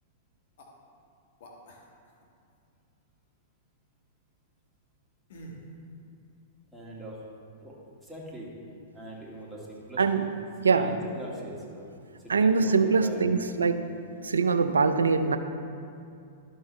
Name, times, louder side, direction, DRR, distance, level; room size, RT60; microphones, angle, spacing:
sound 1, 0.6-0.7 1.4-2.2 5.3-5.7, right 1 dB, 60° left, 1.4 m, -46 dB
voice 1, 6.7-7.2 7.6-7.7 8.0-8.5 8.9-10.3 10.6-11.9 12.2-13.6, equal, 5° right, -6 dB, 2.0 m, -41 dB
voice 2, 10.6-10.9 12.3-13.8 14.2-15.4, right 4 dB, 80° right, 9 dB, 0.5 m, -23 dB
12.0 x 6.3 x 3.2 m, 2.5 s
hypercardioid pair, 105°, 0 cm